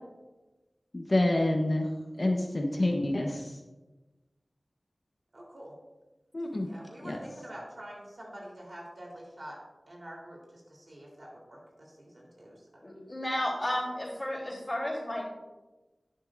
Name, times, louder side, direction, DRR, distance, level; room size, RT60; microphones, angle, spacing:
voice 1, 0.9-1.9 2.1-3.5 6.3-6.7 7.0-7.2, left 1 dB, 45° left, 2 dB, 1.0 m, -27 dB
voice 2, 5.3-5.7 6.6-9.6 9.9-12.6, right 1 dB, 60° right, -3 dB, 3.5 m, -46 dB
voice 3, 12.8-15.2, left 1 dB, 30° left, -3 dB, 3.3 m, -33 dB
11.5 x 10.5 x 2.6 m, 1.1 s
wide cardioid pair, 60°, 0 cm